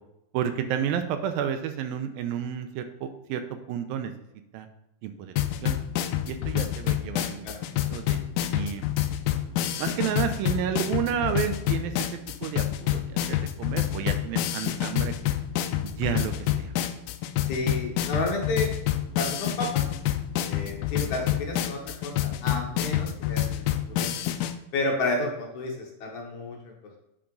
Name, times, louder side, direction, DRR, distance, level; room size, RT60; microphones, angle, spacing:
voice 1, 0.3-4.1 4.5-4.7 5.0-5.3 5.6-5.8 6.3-7.5 7.9-8.2 8.5-8.9 9.8-15.1 15.8-16.7, right 9 dB, 80° right, 8 dB, 2.3 m, -31 dB
sound 1, 5.4-24.5, left 12 dB, 90° left, 2.5 m, -28 dB
voice 2, 17.5-18.7 19.2-19.8 20.5-24.1 24.7-27.0, left 2 dB, 65° left, 0 dB, 2.3 m, -31 dB
8.7 x 5.8 x 3.8 m, 0.89 s
omnidirectional pair, 4.3 m